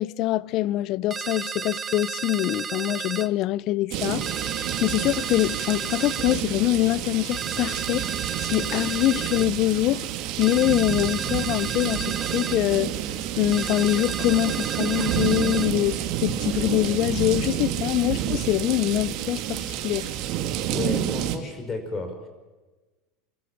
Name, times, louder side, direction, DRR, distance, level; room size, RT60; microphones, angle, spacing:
voice 1, 0.0-10.1 10.4-12.9 13.4-20.1, left 16 dB, 50° left, 0.7 m, -24 dB
sound 1, 1.1-3.3 4.2-6.4 7.3-9.5 10.4-12.6 13.5-15.7, right 6 dB, 20° right, 0.8 m, -33 dB
sound 2, 3.9-21.4, right 11 dB, 55° right, 2.5 m, -29 dB
voice 2, 20.7-22.3, left 3 dB, 25° left, 5.5 m, -32 dB
25.5 x 14.5 x 8.5 m
supercardioid pair, 115°, 0 cm